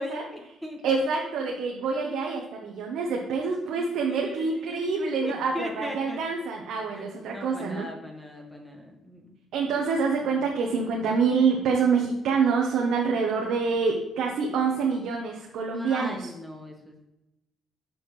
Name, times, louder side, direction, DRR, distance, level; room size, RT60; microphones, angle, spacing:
voice 1, 0.0-0.8 3.7-6.3 6.9-9.4 15.7-17.0, left 1 dB, ahead, 1 dB, 1.5 m, -39 dB
voice 2, 0.8-7.9 9.5-16.3, right 5 dB, 85° right, 0 dB, 0.9 m, -26 dB
6.2 x 5.5 x 3.2 m, 0.92 s
cardioid pair, 90°, 0 cm